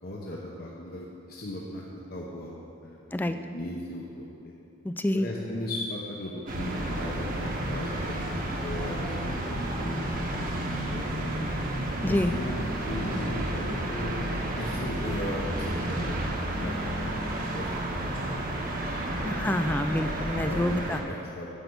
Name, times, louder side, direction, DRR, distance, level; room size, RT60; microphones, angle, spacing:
voice 1, 0.0-1.8 2.1-3.0 3.2-4.5 5.1-10.5 10.9-11.3 12.0-14.1 14.5-16.3 16.6-18.6 19.2-19.3 20.4-21.5, left 1 dB, 50° left, -4 dB, 1.0 m, -37 dB
voice 2, 4.8-5.3 12.0-12.3 19.2-21.0, left 1 dB, 10° left, 8 dB, 0.3 m, -27 dB
sound 1, 6.5-21.0, right 1 dB, 45° right, 1.2 m, -31 dB
10.0 x 5.8 x 6.8 m, 2.6 s
head